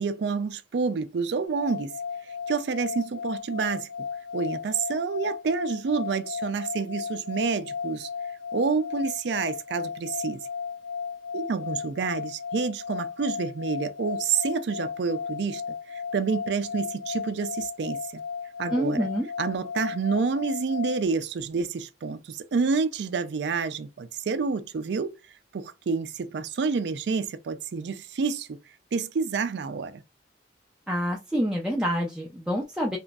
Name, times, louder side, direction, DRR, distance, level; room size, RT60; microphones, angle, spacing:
voice 1, 0.0-1.9 2.5-3.9 4.3-8.1 8.5-10.4 11.3-15.6 15.9-18.2 18.6-19.1 19.4-25.1 25.5-28.5 28.9-30.0, right 5 dB, 70° right, 0.4 m, -28 dB
sound 1, 1.4-21.0, left 6 dB, 75° left, 0.4 m, -35 dB
voice 2, 18.7-19.3 30.9-33.0, equal, 5° right, 0.4 m, -27 dB
3.0 x 2.5 x 2.3 m
head